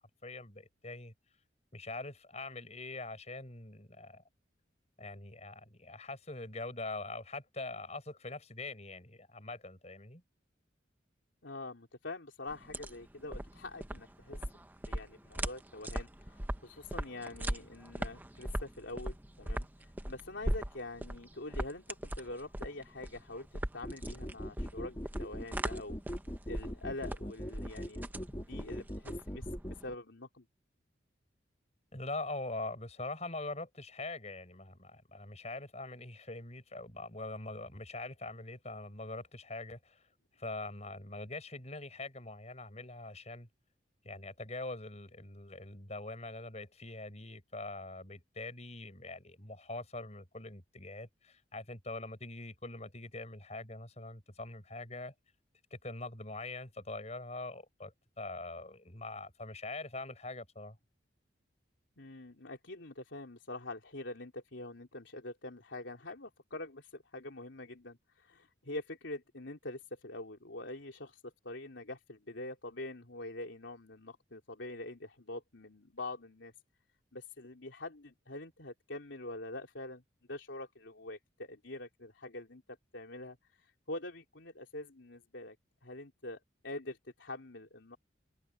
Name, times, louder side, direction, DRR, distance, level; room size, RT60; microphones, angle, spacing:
voice 1, 0.2-1.1 1.7-4.2 5.0-10.2 31.9-40.1 40.4-43.5 44.0-55.1 55.7-60.8, left 2 dB, 35° left, 6.0 m, -43 dB
voice 2, 11.4-14.4 14.9-23.5 23.7-26.0 26.5-28.0 28.3-30.5 62.0-76.5 77.1-80.0 80.3-82.6 82.9-85.5 85.8-88.0, left 2 dB, 80° left, 3.3 m, -45 dB
sound 1, 12.5-29.9, right 1 dB, 10° right, 0.8 m, -40 dB
sound 2, 23.8-29.8, equal, 20° left, 1.8 m, -40 dB
head